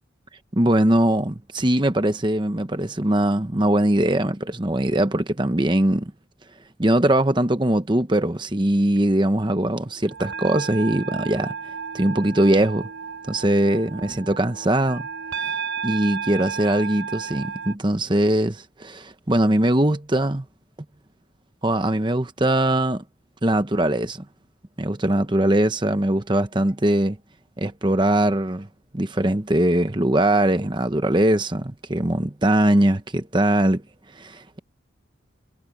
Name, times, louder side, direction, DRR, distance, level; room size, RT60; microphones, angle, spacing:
voice 1, 0.5-6.1 6.8-11.5 11.9-12.9 13.3-15.1 15.4-15.5 15.8-20.4 21.6-23.0 23.4-24.2 24.8-27.2 27.6-28.7 28.9-33.8 34.2-34.6, right 1 dB, 25° right, 0.9 m, -21 dB
sound 1, 9.9-17.7, right 5 dB, 75° right, 3.2 m, -33 dB
head